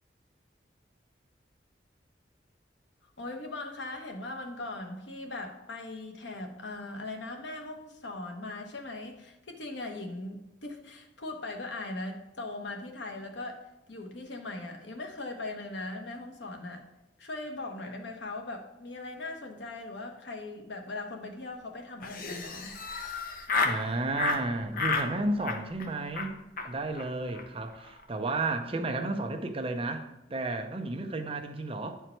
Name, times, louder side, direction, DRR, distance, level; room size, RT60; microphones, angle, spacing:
voice 1, 3.2-16.8 17.2-22.8, left 2 dB, 85° left, 3 dB, 1.1 m, -39 dB
Laughter, 22.0-23.8 24.2-24.4 24.7-25.1 25.4-25.9 26.1-26.3 26.6-26.7 26.9-27.0 27.3-27.4 27.7-28.0, left 4 dB, 50° left, 0.8 m, -31 dB
voice 2, 23.6-26.4 26.6-32.0, right 2 dB, 30° right, 5 dB, 0.7 m, -32 dB
9.1 x 4.6 x 4.5 m, 0.90 s
head